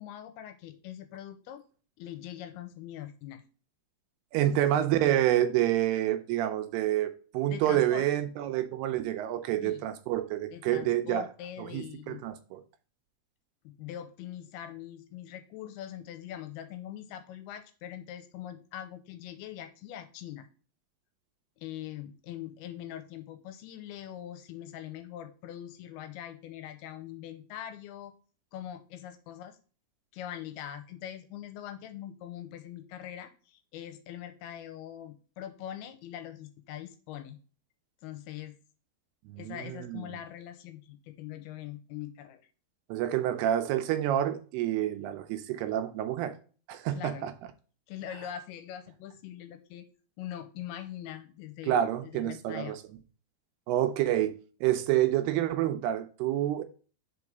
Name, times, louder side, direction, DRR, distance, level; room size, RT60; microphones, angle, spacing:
voice 1, 0.0-1.6 2.0-3.4 4.4-4.7 7.5-8.0 9.6-9.8 10.5-12.2 13.6-20.5 21.6-28.1 28.5-29.6 30.1-37.4 38.0-38.6 39.4-42.4 47.0-47.3 47.9-49.9 50.2-52.8, left 11 dB, 80° left, 2.5 m, -42 dB
voice 2, 4.3-11.3 11.6-12.6 39.3-40.1 42.9-46.4 46.7-47.3 51.6-52.8 53.7-54.4 54.6-56.6, right 12 dB, 85° right, 2.6 m, -28 dB
5.3 x 4.8 x 5.0 m
omnidirectional pair, 4.7 m